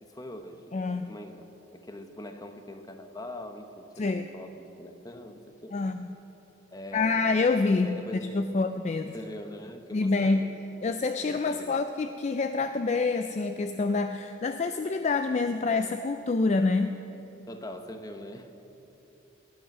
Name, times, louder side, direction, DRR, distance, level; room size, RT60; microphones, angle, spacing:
voice 1, 0.0-5.8 6.7-7.3 7.8-8.3 9.1-11.0 11.3-11.8 17.5-18.5, left 1 dB, 20° left, 7 dB, 0.8 m, -43 dB
voice 2, 0.7-1.1 4.0-4.3 5.7-6.1 6.9-9.1 9.9-10.4 10.8-17.0, left 3 dB, 35° left, 9 dB, 0.4 m, -27 dB
17.5 x 9.4 x 6.0 m, 3.0 s
head